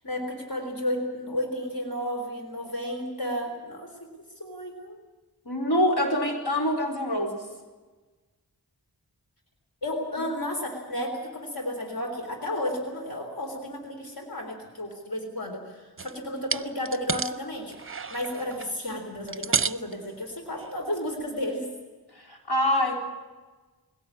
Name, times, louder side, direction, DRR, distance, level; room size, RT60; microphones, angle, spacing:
voice 1, 0.0-4.1 4.4-5.0 9.8-17.7 18.1-21.7, left 1 dB, 65° left, 2 dB, 3.9 m, -32 dB
voice 2, 5.5-7.4 22.2-23.0, left 1 dB, 80° left, 0 dB, 4.2 m, -25 dB
sound 1, 16.0-16.2 16.5-17.4 17.7-18.7 19.2-19.9 20.6-20.7 21.2-21.3, right 5 dB, 35° right, 0.6 m, -30 dB
21.5 x 17.0 x 8.7 m, 1.3 s
wide cardioid pair, 75°, 39 cm